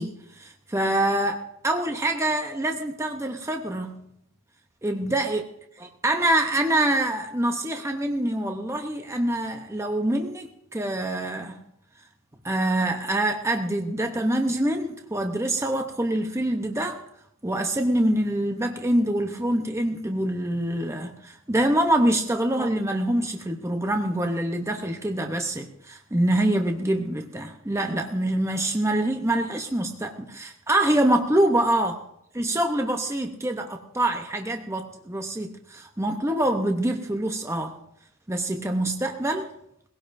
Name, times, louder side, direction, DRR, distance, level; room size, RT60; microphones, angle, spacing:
voice 1, 0.0-4.0 4.8-5.4 5.8-11.6 12.4-17.0 17.4-32.0 32.3-37.7 38.3-39.5, right 1 dB, 10° right, 4 dB, 0.8 m, -25 dB
21.0 x 17.0 x 2.6 m, 0.76 s
head